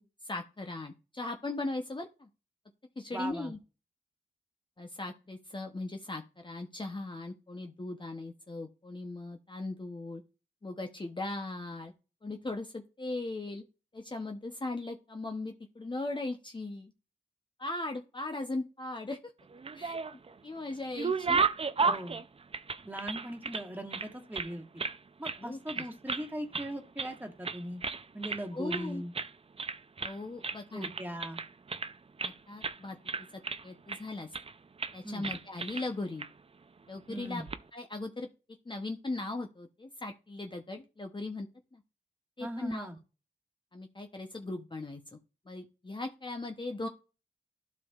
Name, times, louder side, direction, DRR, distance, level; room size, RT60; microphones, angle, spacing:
voice 1, 0.0-2.3 3.0-3.6 4.8-10.2 10.6-11.9 12.2-13.6 13.9-16.9 17.6-19.3 19.7-20.0 20.4-21.4 21.8-21.9 25.4-25.9 28.5-29.0 30.0-30.9 32.2-33.0 33.6-34.3 34.9-36.3 36.9-37.4 37.7-38.3 38.7-41.5 41.7-41.8 42.4-42.9 43.7-45.2 45.5-46.9, left 2 dB, 30° left, 4 dB, 0.8 m, -38 dB
voice 2, 3.1-3.5 21.8-22.2 22.8-24.6 25.2-27.8 28.1-29.1 30.7-31.4 35.0-35.3 37.1-37.5 42.4-43.0, right 1 dB, 10° right, 2 dB, 1.7 m, -39 dB
sound 1, 19.5-20.3 20.7-23.6 23.9-25.0 25.2-25.4 25.7-26.3 26.5-27.2 27.4-28.4 28.7-28.9 29.1-29.3 29.6-30.2 30.4-32.3 32.6-32.8 33.1-34.0 34.3-34.5 34.8-35.0 35.2-35.9 36.2-36.3 37.3-37.6, right 5 dB, 35° right, 0.5 m, -33 dB
11.5 x 5.3 x 2.4 m, 0.33 s
cardioid pair, 50°, 17 cm